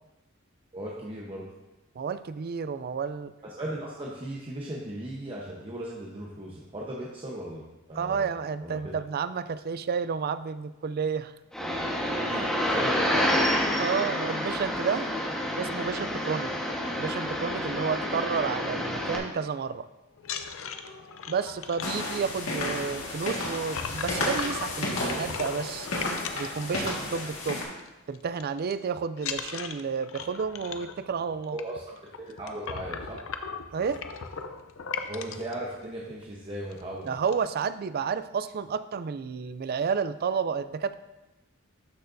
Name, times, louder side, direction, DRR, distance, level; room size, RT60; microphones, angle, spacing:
voice 1, 0.7-1.5 3.4-8.3 8.6-8.9 12.6-13.8 14.2-14.3 31.5-33.2 35.1-37.2, right 1 dB, 25° right, -4 dB, 1.0 m, -37 dB
voice 2, 2.0-3.3 7.9-11.3 12.3-12.8 13.8-15.1 15.6-16.5 17.0-19.9 21.3-25.9 26.4-27.6 28.1-31.6 33.7-34.0 37.1-40.9, right 6 dB, 50° right, 13 dB, 0.4 m, -31 dB
sound 1, 11.5-19.2, left 1 dB, 5° left, 1.3 m, -28 dB
sound 2, 20.2-27.3 27.6-27.9 28.1-28.7 29.2-35.5 36.2-36.3 36.6-36.8 37.1-37.6, left 6 dB, 70° left, 0.6 m, -38 dB
sound 3, 21.8-27.6, left 2 dB, 85° left, 1.8 m, -32 dB
12.5 x 6.4 x 2.7 m, 1.0 s
head